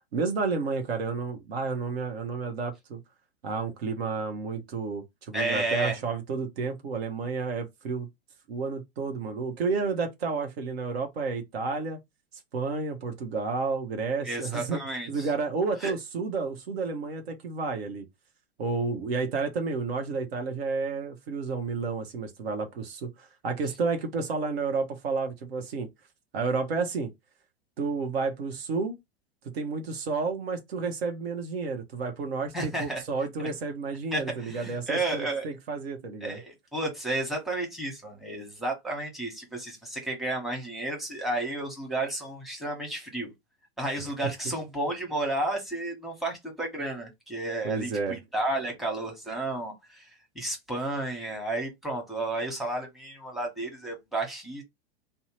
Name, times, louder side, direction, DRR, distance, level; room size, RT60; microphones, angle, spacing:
voice 1, 0.1-3.0 3.4-8.1 8.5-12.0 12.5-14.8 15.1-18.1 18.6-25.9 26.3-27.1 27.8-28.9 29.5-36.4 47.6-48.2, right 4 dB, 70° right, 0.8 m, -31 dB
voice 2, 5.3-6.0 14.2-15.3 15.8-15.9 32.5-33.0 34.1-35.5 36.2-43.3 43.8-54.6, right 2 dB, ahead, 1.0 m, -32 dB
2.6 x 2.0 x 3.0 m
hypercardioid pair, 105°, 32 cm